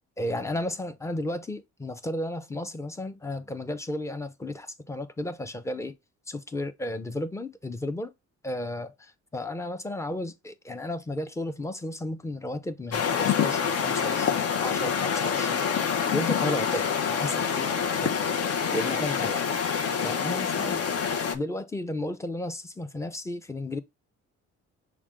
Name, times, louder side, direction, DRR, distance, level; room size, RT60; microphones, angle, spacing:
voice 1, 0.2-6.0 6.3-8.1 8.4-15.7 16.1-18.1 18.7-19.5 20.0-20.8 21.3-23.8, left 1 dB, 10° left, 0.6 m, -33 dB
sound 1, 12.9-21.4, left 7 dB, 55° left, 0.8 m, -26 dB
6.0 x 2.3 x 3.6 m
cardioid pair, 90°, 30 cm